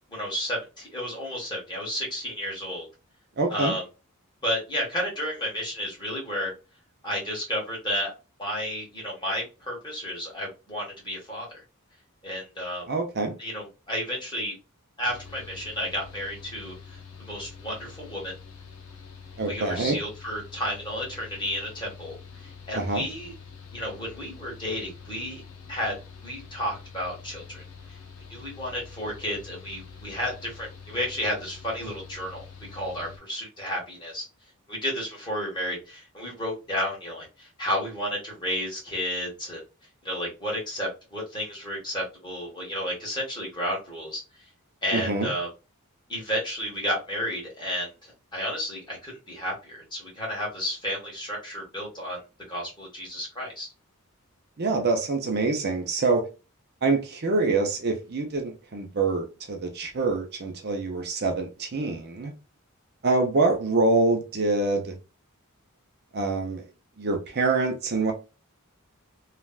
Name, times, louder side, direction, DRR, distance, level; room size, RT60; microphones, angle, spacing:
voice 1, 0.1-2.9 3.5-3.8 4.4-6.5 7.0-8.1 8.4-11.6 12.2-12.9 13.4-14.5 15.0-18.3 19.5-23.3 23.7-25.4 25.7-26.0 26.2-27.6 27.9-28.0 28.3-32.5 32.7-34.2 34.7-39.6 40.0-44.2 44.8-45.5 46.1-52.2 52.5-53.7, equal, 20° left, 1.5 m, -32 dB
voice 2, 3.4-3.7 12.9-13.3 19.4-20.0 22.7-23.0 44.9-45.3 54.6-56.3 56.8-62.3 63.0-64.9 66.1-66.7 67.0-68.1, right 3 dB, 50° right, 0.7 m, -25 dB
Mechanical fan, 15.1-33.2, left 5 dB, 80° left, 0.8 m, -46 dB
3.2 x 2.4 x 2.4 m
head